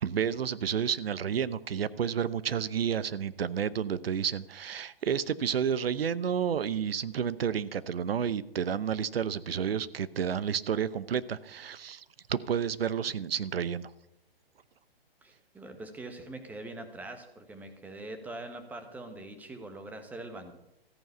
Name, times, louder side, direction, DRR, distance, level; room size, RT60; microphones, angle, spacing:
voice 1, 0.0-13.9, right 8 dB, 75° right, 17 dB, 0.8 m, -31 dB
voice 2, 15.2-20.6, right 2 dB, 5° right, 7 dB, 1.1 m, -43 dB
14.0 x 9.2 x 5.6 m, 0.90 s
hypercardioid pair, 145°, 30 cm